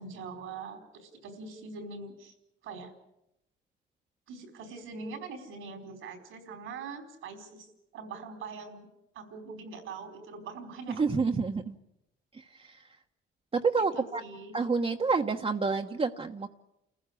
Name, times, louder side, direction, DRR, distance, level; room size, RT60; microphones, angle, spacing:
voice 1, 0.0-2.3 2.6-2.9 4.3-8.9 9.1-11.0 13.9-14.5, right 4 dB, 85° right, 5 dB, 4.5 m, -43 dB
voice 2, 11.0-11.7 12.6-12.7 13.5-14.2 14.5-16.5, right 4 dB, 30° right, 3 dB, 1.2 m, -28 dB
29.0 x 15.5 x 8.5 m, 0.88 s
cardioid pair, 90°, 20 cm